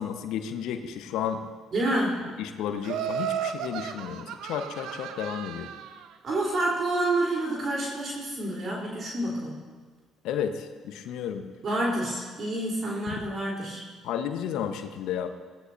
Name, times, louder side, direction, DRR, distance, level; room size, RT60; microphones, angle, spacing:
voice 1, 0.0-1.4 2.4-5.7 10.2-11.5 14.0-15.3, left 8 dB, 70° left, 7 dB, 1.1 m, -32 dB
voice 2, 1.7-2.3 6.2-9.6 11.6-13.8, right 1 dB, 50° right, -3 dB, 3.8 m, -28 dB
Laughter, 2.8-6.1, right 9 dB, 70° right, 0.8 m, -34 dB
22.5 x 17.0 x 2.7 m, 1.5 s
hypercardioid pair, 55°, 0 cm